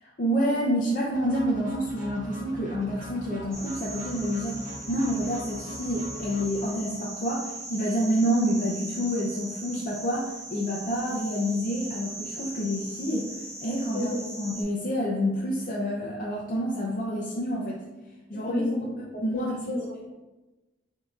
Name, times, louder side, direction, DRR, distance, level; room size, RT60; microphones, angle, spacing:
voice 1, 0.0-13.3 13.6-14.1 14.4-17.8 18.3-18.7 19.0-19.7, equal, 50° left, -4 dB, 0.6 m, -28 dB
sound 1, 1.1-7.1, left 1 dB, 50° right, 1.2 m, -42 dB
sound 2, 3.5-14.6, right 1 dB, 15° right, 0.9 m, -40 dB
voice 2, 13.6-14.2 18.3-20.1, left 1 dB, 70° left, -2 dB, 1.1 m, -32 dB
6.3 x 2.8 x 2.4 m, 1.1 s
head